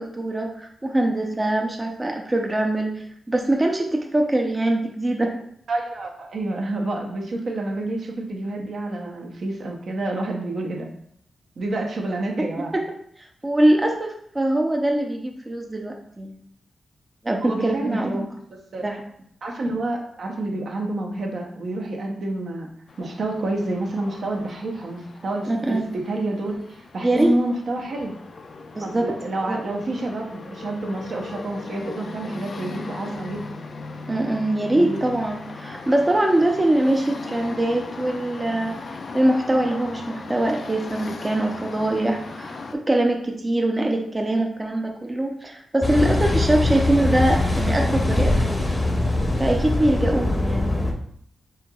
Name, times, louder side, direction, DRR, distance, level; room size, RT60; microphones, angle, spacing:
voice 1, 0.0-3.0 3.3-5.3 12.7-12.8 13.4-16.4 17.2-18.2 18.8-19.0 25.5-25.9 27.0-27.4 28.7-29.1 29.5-29.6 34.1-38.8 39.1-48.7 49.4-50.8, right 1 dB, 25° right, 2 dB, 0.6 m, -23 dB
voice 2, 5.7-10.9 11.6-12.8 17.4-18.0 18.7-18.8 19.4-22.7 23.0-28.2 28.8-33.6 34.7-35.0, right 2 dB, 65° right, 1 dB, 0.8 m, -28 dB
sound 1, 22.9-42.8, left 3 dB, 55° left, 0.4 m, -38 dB
Car passing by / Idling / Accelerating revving vroom, 45.8-50.9, left 2 dB, 20° left, 0.7 m, -22 dB
4.4 x 3.7 x 2.3 m, 0.68 s
cardioid pair, 70°, 0 cm